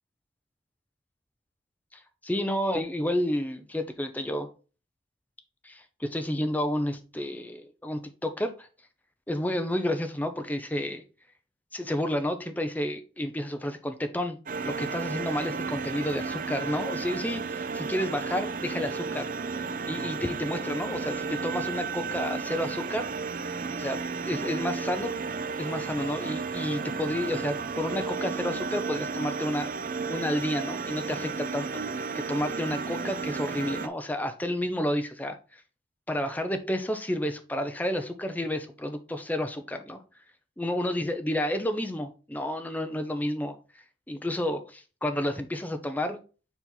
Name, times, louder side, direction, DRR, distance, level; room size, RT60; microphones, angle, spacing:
voice 1, 1.9-4.5 5.6-8.7 9.3-11.0 11.7-14.4 14.6-23.1 23.8-25.1 25.6-35.6 36.1-40.0 40.6-43.5 44.1-46.2, left 1 dB, 10° left, 0.7 m, -31 dB
sound 1, 14.5-33.9, right 5 dB, 45° right, 0.5 m, -33 dB
7.2 x 4.3 x 3.9 m
head